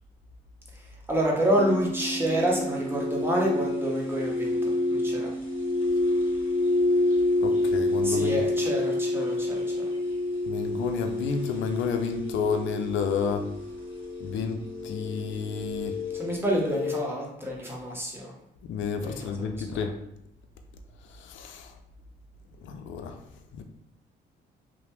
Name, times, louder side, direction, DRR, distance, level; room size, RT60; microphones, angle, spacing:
voice 1, 1.1-5.3 8.0-9.8 16.2-18.3 19.0-19.9, right 1 dB, 10° right, -2 dB, 0.8 m, -28 dB
sound 1, 1.5-17.0, left 2 dB, 25° left, 1.3 m, -28 dB
voice 2, 7.4-8.4 10.5-13.4 14.2-16.0 18.6-19.9 21.2-21.7 22.6-23.2 23.5-23.6, left 5 dB, 70° left, 6 dB, 0.4 m, -30 dB
2.8 x 2.0 x 3.2 m, 0.77 s
cardioid pair, 90°, 20 cm